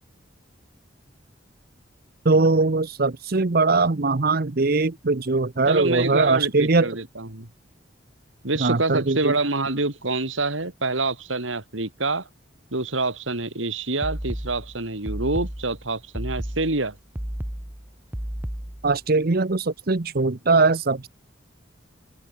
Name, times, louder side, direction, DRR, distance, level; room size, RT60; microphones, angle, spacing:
voice 1, 2.2-6.9 8.6-9.3 18.8-21.1, right 3 dB, 50° right, 0.8 m, -21 dB
voice 2, 5.7-7.5 8.4-12.2 12.7-16.9, right 3 dB, 85° right, 3.1 m, -26 dB
sound 1, 14.0-19.0, equal, 10° right, 0.8 m, -33 dB
head